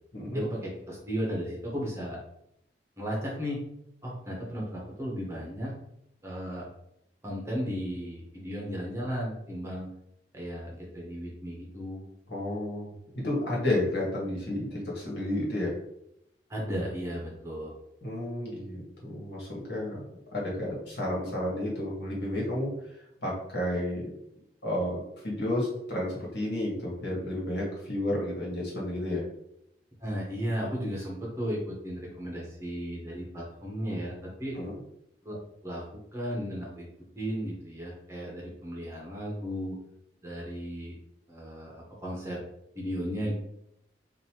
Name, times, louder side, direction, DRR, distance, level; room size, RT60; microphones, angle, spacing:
voice 1, 0.3-2.2 3.0-3.6 4.0-5.7 6.2-6.6 7.2-9.9 10.3-12.0 16.5-17.8 30.0-34.6 35.2-35.3 35.6-36.9 37.2-39.8 40.2-40.9 41.3-42.4 42.7-43.3, equal, 15° right, -3 dB, 1.0 m, -35 dB
voice 2, 12.3-15.7 18.0-20.0 20.3-24.1 24.6-29.2 34.5-34.7, left 1 dB, 65° left, -4 dB, 1.6 m, -31 dB
5.2 x 2.6 x 2.9 m, 0.78 s
head